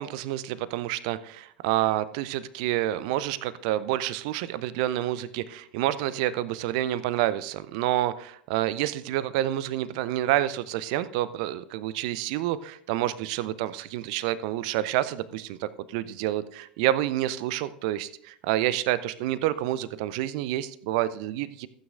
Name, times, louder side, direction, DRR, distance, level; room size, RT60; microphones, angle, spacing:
voice 1, 0.0-21.7, right 13 dB, 55° right, 16 dB, 0.5 m, -28 dB
15.0 x 9.0 x 2.5 m, 0.68 s
figure-of-eight pair, 80°, 5 cm